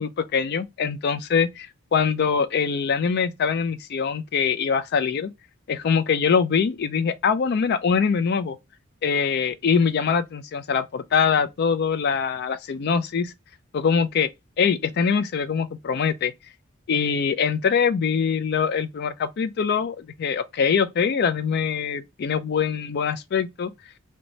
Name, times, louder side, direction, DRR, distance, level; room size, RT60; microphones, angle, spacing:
voice 1, 0.0-5.3 5.7-8.6 9.0-13.3 13.7-14.3 14.6-16.3 16.9-23.7, left 6 dB, 50° left, 0.4 m, -23 dB
2.6 x 2.2 x 2.9 m
head